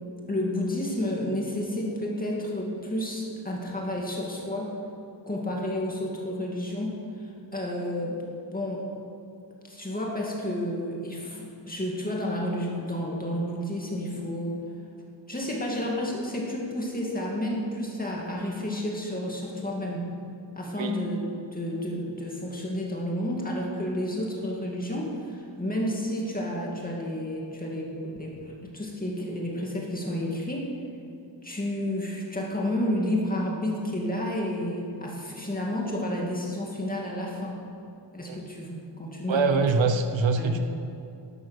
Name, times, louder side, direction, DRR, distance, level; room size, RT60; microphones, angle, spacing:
voice 1, 0.3-4.7 5.3-8.2 8.5-8.8 9.6-14.6 15.3-20.1 20.5-30.7 31.4-37.6 38.1-39.7 40.4-40.6, left 1 dB, 20° left, -2 dB, 2.4 m, -31 dB
voice 2, 39.3-40.6, right 4 dB, 85° right, 7 dB, 0.9 m, -24 dB
12.5 x 11.5 x 6.5 m, 2.7 s
wide cardioid pair, 135°, 44 cm